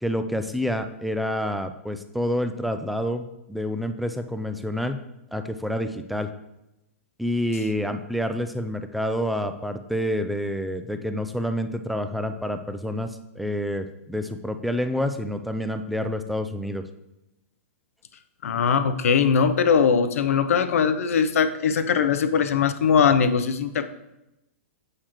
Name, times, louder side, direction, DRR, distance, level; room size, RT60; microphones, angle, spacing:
voice 1, 0.0-5.0 5.3-6.3 7.2-16.8, equal, ahead, 8 dB, 0.3 m, -28 dB
voice 2, 18.4-23.8, left 6 dB, 80° left, 10 dB, 0.6 m, -21 dB
7.2 x 6.6 x 3.0 m, 0.92 s
hypercardioid pair, 155°, 8 cm